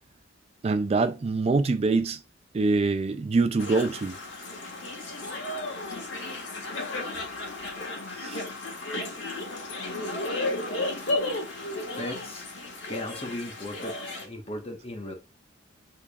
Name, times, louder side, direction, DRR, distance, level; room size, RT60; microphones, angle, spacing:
voice 1, 0.6-2.2 2.5-4.2 8.2-8.4, right 3 dB, 30° right, 0.3 m, -24 dB
sound 1, 3.6-14.2, left 2 dB, 70° left, 1.6 m, -34 dB
voice 2, 12.0-12.5 12.9-15.1, left 1 dB, 30° left, 1.1 m, -37 dB
6.5 x 3.5 x 2.3 m
head